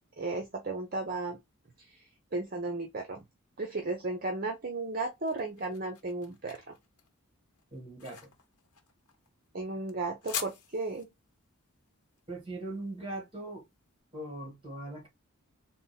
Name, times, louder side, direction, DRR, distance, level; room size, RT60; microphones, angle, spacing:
voice 1, 0.2-1.4 2.3-3.2 3.6-6.6 9.5-11.1, right 3 dB, 40° right, 0.6 m, -34 dB
sound 1, 4.7-13.8, left 7 dB, 90° left, 1.0 m, -45 dB
voice 2, 7.7-8.3 12.3-13.7 14.1-15.1, right 2 dB, 25° right, 1.7 m, -40 dB
3.5 x 2.1 x 4.0 m
head